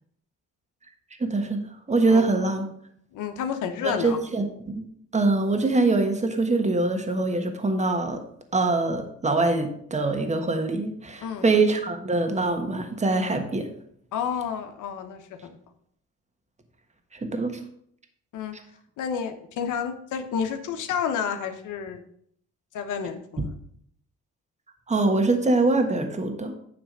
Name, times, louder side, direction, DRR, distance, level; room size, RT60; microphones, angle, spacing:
voice 1, 1.2-1.6 1.9-2.7 3.8-4.8 5.1-8.2 8.5-13.7 17.1-17.6 24.9-26.5, right 3 dB, 25° right, 5 dB, 1.4 m, -23 dB
voice 2, 3.1-4.2 11.2-11.4 14.1-15.6 18.3-18.5 19.0-22.0 22.7-23.5, left 7 dB, 85° left, 6 dB, 1.1 m, -30 dB
9.4 x 3.4 x 6.6 m, 0.68 s
cardioid pair, 90°, 30 cm